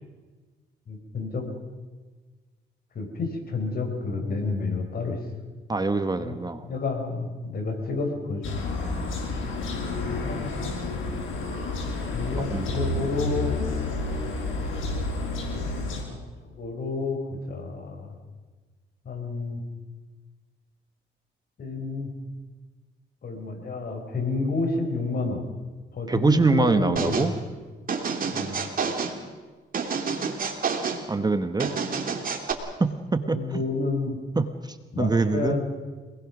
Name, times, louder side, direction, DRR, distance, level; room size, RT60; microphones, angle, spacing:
voice 1, 0.9-1.5 3.0-5.2 6.2-6.4 6.6-8.5 9.8-10.9 12.1-13.5 16.0-16.2 16.5-18.2 19.1-19.6 21.6-22.1 23.2-25.4 25.9-27.3 28.3-28.6 33.2-34.2 34.9-35.6, left 3 dB, 50° left, 4 dB, 5.3 m, -30 dB
voice 2, 5.7-6.6 12.5-12.7 26.1-27.3 31.1-31.7 32.8-33.6 34.4-35.6, right 3 dB, 20° right, 9 dB, 1.2 m, -24 dB
sound 1, 8.4-16.0, left 3 dB, 80° left, 6.8 m, -30 dB
sound 2, 27.0-27.3 27.9-29.2 29.7-31.0 31.6-32.5, right 5 dB, 45° right, 3.0 m, -28 dB
26.5 x 20.0 x 6.2 m, 1.4 s
cardioid pair, 90°, 20 cm